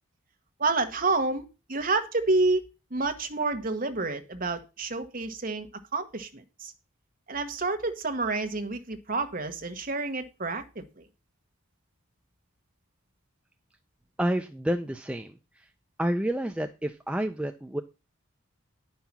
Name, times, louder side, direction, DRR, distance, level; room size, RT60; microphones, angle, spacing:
voice 1, 0.6-6.7 7.3-11.0, right 3 dB, 40° right, 7 dB, 1.2 m, -29 dB
voice 2, 14.2-15.7 16.0-17.8, right 1 dB, 5° right, 6 dB, 0.4 m, -29 dB
10.0 x 5.6 x 5.9 m, 0.29 s
head